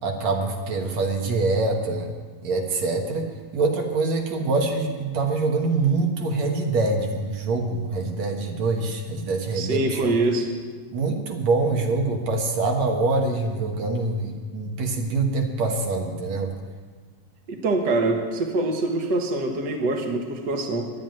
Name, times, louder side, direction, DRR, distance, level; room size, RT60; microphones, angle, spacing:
voice 1, 0.0-2.1 2.4-10.1 10.9-16.5, right 3 dB, 60° right, 2 dB, 2.3 m, -25 dB
voice 2, 9.5-10.5 17.5-20.9, right 2 dB, 45° right, 3 dB, 1.5 m, -24 dB
11.5 x 11.0 x 9.1 m, 1.5 s
omnidirectional pair, 3.9 m